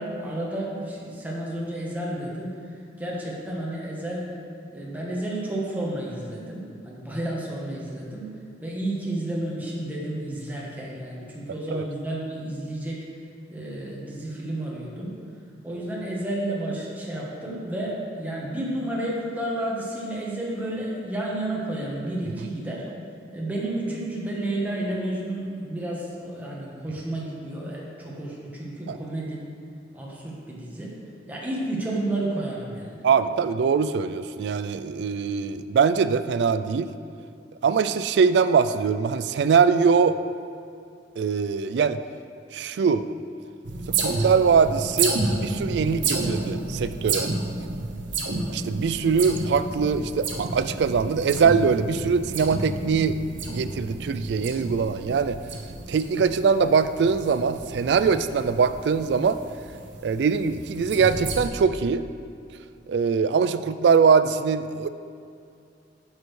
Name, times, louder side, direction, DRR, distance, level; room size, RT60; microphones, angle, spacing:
voice 1, 0.0-2.6 3.0-4.3 4.7-8.3 8.6-13.0 13.5-15.1 15.6-22.8 23.3-29.4 29.9-30.9 31.3-33.0, right 1 dB, 10° right, -5 dB, 1.2 m, -31 dB
voice 2, 33.0-36.9 37.6-40.2 41.2-42.0 42.5-43.0 44.0-47.3 48.5-53.2 53.5-55.4 55.9-59.4 60.0-62.0 62.9-64.9, right 5 dB, 65° right, 12 dB, 0.3 m, -22 dB
sound 1, 43.6-61.5, right 3 dB, 85° right, 0.8 m, -31 dB
9.4 x 6.4 x 3.2 m, 2.4 s
head